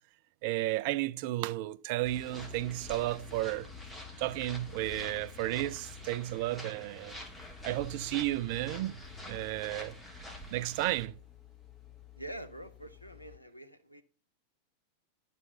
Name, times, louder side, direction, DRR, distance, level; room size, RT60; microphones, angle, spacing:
voice 1, 0.4-3.7 4.2-7.2 7.6-9.0 9.3-10.0 10.5-11.2, right 16 dB, 50° right, 0.3 m, -33 dB
sound 1, 2.0-11.1, left 2 dB, 5° left, 2.1 m, -46 dB
sound 2, 7.1-13.4, left 14 dB, 20° left, 1.4 m, -55 dB
voice 2, 12.2-14.0, right 1 dB, 90° left, 0.7 m, -45 dB
11.0 x 4.1 x 5.6 m
figure-of-eight pair, 90°, 0 cm